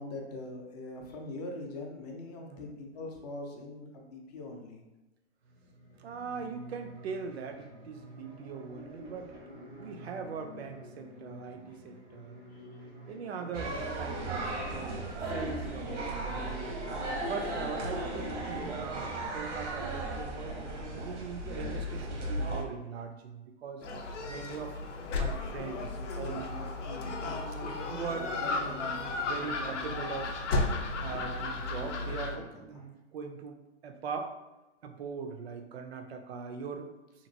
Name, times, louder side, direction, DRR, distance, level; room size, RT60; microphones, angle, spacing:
voice 1, 0.0-4.9 12.5-12.6 25.7-31.1 31.8-32.8, left 2 dB, 35° left, 0 dB, 0.5 m, -44 dB
voice 2, 2.4-2.8 6.0-9.3 9.8-12.4 13.1-16.6 17.2-20.6 20.9-23.8 24.3-24.8 25.1-26.6 27.3-30.4 31.0-34.4 34.8-36.9, right 5 dB, 65° right, 6 dB, 0.5 m, -41 dB
sound 1, 5.4-16.8, equal, 15° right, 0.5 m, -49 dB
sound 2, 13.5-22.6, right 1 dB, 85° right, 0.9 m, -36 dB
Gull seagull, 23.8-32.4, left 3 dB, 90° left, 0.6 m, -34 dB
2.9 x 2.6 x 2.6 m, 1.0 s
hypercardioid pair, 145°, 35 cm